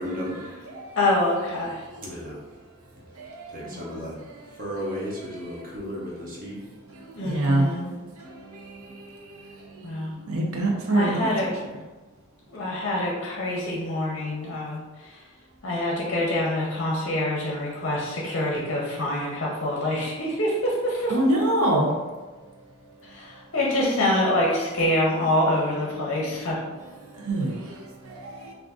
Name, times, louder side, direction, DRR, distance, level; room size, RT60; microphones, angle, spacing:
voice 1, 0.0-0.7 1.9-2.7 3.5-4.2 4.5-6.6, equal, 40° right, -5 dB, 0.8 m, -34 dB
voice 2, 1.0-1.8 3.7-4.1 7.1-7.9 9.8-10.1 10.9-11.5 12.5-15.2 15.6-21.1 23.1-26.6, left 1 dB, 55° left, -4 dB, 0.6 m, -26 dB
voice 3, 3.2-3.5 7.2-7.7 10.3-11.3 21.1-21.9 27.3-27.5 28.2-28.3, right 1 dB, 80° right, 0 dB, 0.7 m, -23 dB
2.5 x 2.5 x 3.5 m, 1.3 s
head